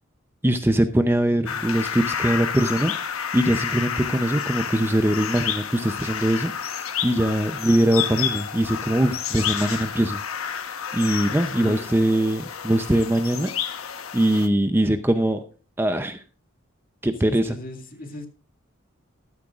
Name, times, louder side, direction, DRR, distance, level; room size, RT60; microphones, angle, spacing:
voice 1, 0.4-2.9 3.3-6.5 7.0-10.2 10.9-13.5 14.1-15.4 15.8-16.2 17.0-17.6, right 1 dB, 10° right, 8 dB, 0.6 m, -22 dB
sound 1, 1.5-14.5, left 8 dB, 85° left, 1.1 m, -30 dB
voice 2, 11.3-11.9 17.2-18.3, left 1 dB, 45° left, 4 dB, 2.1 m, -38 dB
13.5 x 12.5 x 2.4 m, 0.34 s
head